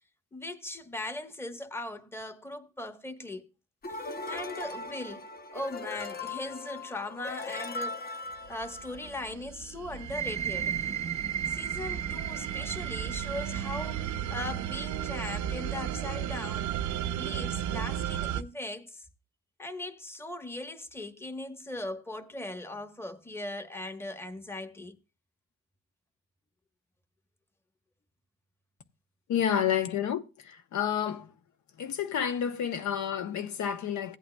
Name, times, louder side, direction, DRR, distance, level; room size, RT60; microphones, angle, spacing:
voice 1, 0.3-3.5 3.9-5.3 5.5-8.0 8.5-10.8 11.5-16.7 17.2-19.1 19.6-24.9, left 2 dB, 10° left, 1.1 m, -39 dB
sound 1, 3.8-9.3, left 3 dB, 30° left, 0.8 m, -39 dB
sound 2, 8.4-18.4, right 10 dB, 75° right, 0.6 m, -35 dB
sound 3, 10.0-17.4, right 9 dB, 25° right, 0.4 m, -37 dB
voice 2, 29.3-31.3 31.8-34.2, left 9 dB, 70° left, 0.9 m, -30 dB
16.0 x 8.5 x 2.2 m
cardioid pair, 90°, 30 cm